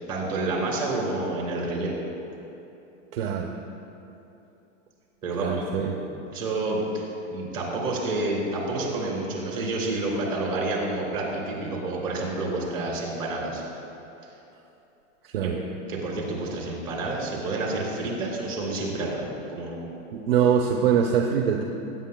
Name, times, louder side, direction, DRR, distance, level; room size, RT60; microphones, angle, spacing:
voice 1, 0.1-2.0 5.2-5.9 6.3-13.6 15.4-15.5 15.9-19.8, right 2 dB, 10° right, -4 dB, 2.7 m, -29 dB
voice 2, 3.1-3.5 5.4-6.0 15.3-15.6 20.1-21.6, right 8 dB, 50° right, 2 dB, 0.6 m, -23 dB
21.0 x 9.1 x 2.2 m, 2.9 s
supercardioid pair, 180°, 39 cm